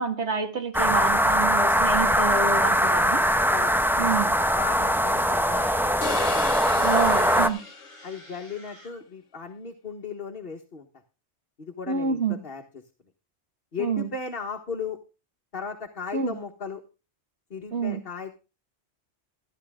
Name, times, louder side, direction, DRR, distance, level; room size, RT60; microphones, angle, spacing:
voice 1, 0.0-3.2 4.0-4.3 6.8-7.6 11.9-12.4 13.8-14.1 16.1-16.4 17.7-18.0, right 4 dB, 75° right, 6 dB, 2.3 m, -27 dB
sound 1, 0.7-7.5, equal, ahead, 0.8 m, -22 dB
voice 2, 2.5-3.7 4.0-4.1 4.5-5.9 6.6-7.5 8.0-10.9 11.6-12.6 13.7-15.0 15.5-16.8 17.5-18.3, left 5 dB, 55° left, 2 dB, 1.7 m, -36 dB
sound 2, 5.1-9.0, right 1 dB, 20° right, 3.0 m, -47 dB
sound 3, 6.0-8.4, left 7 dB, 80° left, 1.2 m, -36 dB
14.5 x 10.5 x 3.7 m, 0.31 s
omnidirectional pair, 1.2 m